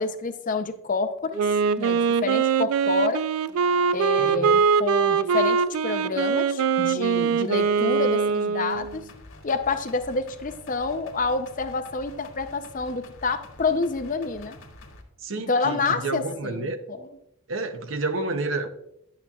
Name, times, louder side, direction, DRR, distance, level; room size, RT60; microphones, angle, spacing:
voice 1, 0.0-1.4 1.8-3.2 3.9-9.1 9.4-14.6 15.5-17.1, left 4 dB, 40° left, 9 dB, 0.6 m, -28 dB
Wind instrument woodwind instrument, 1.4-9.0, right 6 dB, 90° right, 0.3 m, -22 dB
voice 2, 4.2-4.6 15.2-16.8 17.5-18.7, right 3 dB, 65° right, 9 dB, 0.7 m, -30 dB
sound 1, 8.7-15.0, left 2 dB, 90° left, 1.6 m, -47 dB
10.5 x 8.6 x 2.3 m, 0.78 s
head